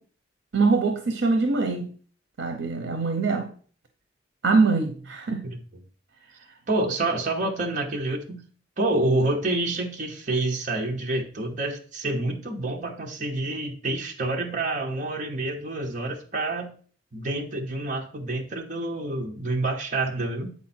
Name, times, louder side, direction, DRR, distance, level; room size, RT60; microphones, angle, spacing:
voice 1, 0.5-1.9 2.4-3.5 4.4-5.4, right 4 dB, 90° right, 0.7 m, -23 dB
voice 2, 6.7-8.4 8.8-16.7 17.1-20.5, right 2 dB, 45° right, 1.0 m, -28 dB
8.6 x 4.4 x 4.3 m
head